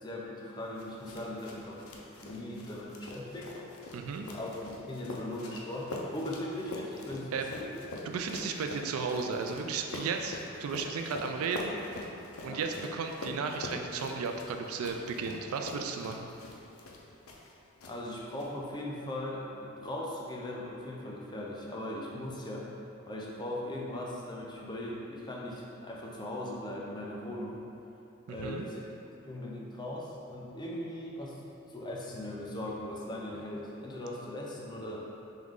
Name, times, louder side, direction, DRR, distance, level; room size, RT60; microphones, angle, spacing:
voice 1, 0.0-1.8 2.2-3.6 4.3-7.7 12.4-12.6 17.8-22.7 23.1-27.6 28.3-28.8 29.2-31.4 31.7-35.1, left 1 dB, 20° left, -4 dB, 0.5 m, -39 dB
sound 1, 0.8-17.5 17.8-18.5, left 2 dB, 90° left, 0.5 m, -44 dB
voice 2, 3.9-4.3 7.3-7.4 8.1-11.7 12.4-16.3 28.3-28.6, right 5 dB, 85° right, 4 dB, 0.3 m, -34 dB
3.6 x 3.1 x 3.6 m, 2.7 s
head